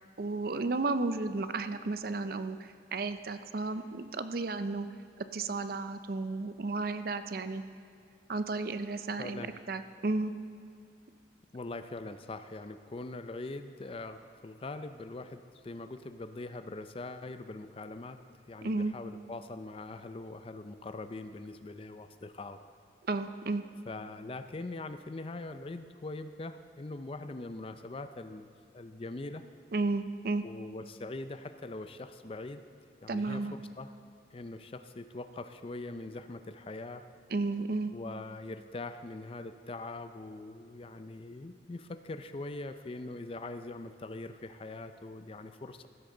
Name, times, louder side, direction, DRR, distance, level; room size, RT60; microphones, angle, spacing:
voice 1, 0.2-4.9 5.3-7.6 8.3-9.4 9.7-10.3 18.6-18.9 23.1-23.6 29.7-30.4 33.1-33.5 37.3-37.9, right 3 dB, 55° right, 11 dB, 0.5 m, -33 dB
voice 2, 9.2-9.5 11.5-18.2 18.5-22.6 23.9-29.5 30.4-32.6 33.0-33.9 34.3-37.1 37.9-45.9, left 2 dB, 30° left, 10 dB, 0.5 m, -42 dB
15.5 x 13.0 x 3.8 m, 2.3 s
head